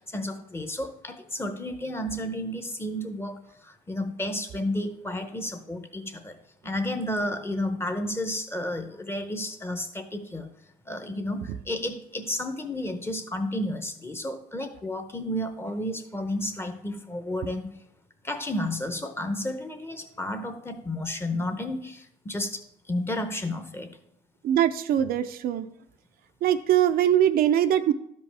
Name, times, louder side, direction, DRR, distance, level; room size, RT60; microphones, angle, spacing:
voice 1, 0.1-3.4 3.9-6.3 6.6-10.5 10.9-17.7 18.2-22.0 22.3-22.6 22.9-23.9, left 1 dB, 15° left, 8 dB, 0.8 m, -31 dB
voice 2, 24.4-25.7 26.4-27.9, right 10 dB, 60° right, 9 dB, 0.5 m, -22 dB
12.0 x 5.3 x 3.4 m, 0.75 s
cardioid pair, 110°, 17 cm